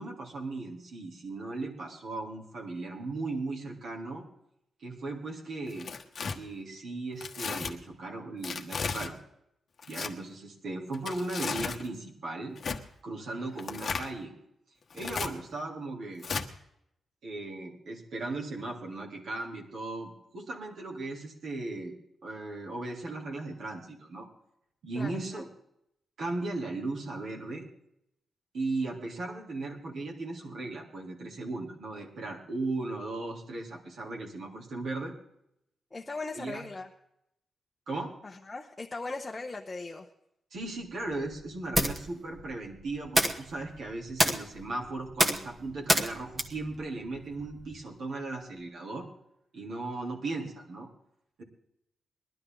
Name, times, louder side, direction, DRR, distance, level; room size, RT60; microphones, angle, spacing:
voice 1, 0.0-4.2 4.8-5.9 6.3-9.2 9.9-12.6 13.0-14.3 14.9-16.2 17.2-21.9 22.2-24.3 24.8-25.5 26.2-27.6 28.5-35.1 36.3-36.6 37.9-38.1 40.5-49.1 49.5-50.9 51.4-51.5, right 2 dB, 65° right, -1 dB, 3.4 m, -37 dB
Tearing, 5.7-6.4 7.2-7.7 8.4-9.1 9.8-10.1 10.9-11.8 12.6-12.8 13.6-14.1 14.9-15.3 16.2-16.5, left 5 dB, 45° left, 1.3 m, -34 dB
voice 2, 24.9-25.5 35.9-36.9 38.2-40.1, left 3 dB, 20° left, 1 dB, 1.0 m, -39 dB
sound 1, 40.6-47.8, right 1 dB, 20° right, 1.3 m, -31 dB
21.0 x 11.5 x 3.9 m, 0.77 s
wide cardioid pair, 140°, 0 cm